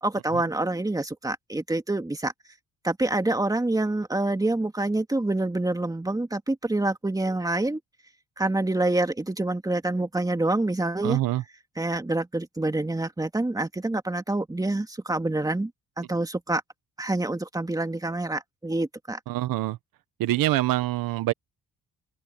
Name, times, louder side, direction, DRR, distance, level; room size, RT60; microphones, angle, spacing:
voice 1, 0.0-2.3 2.8-7.8 8.4-11.2 11.8-15.7 16.0-16.6 17.0-19.2, right 2 dB, 10° right, 2.4 m, -26 dB
voice 2, 11.0-11.4 19.3-19.8 20.2-21.3, right 16 dB, 85° right, 1.2 m, -25 dB
open air
cardioid pair, 90°, 33 cm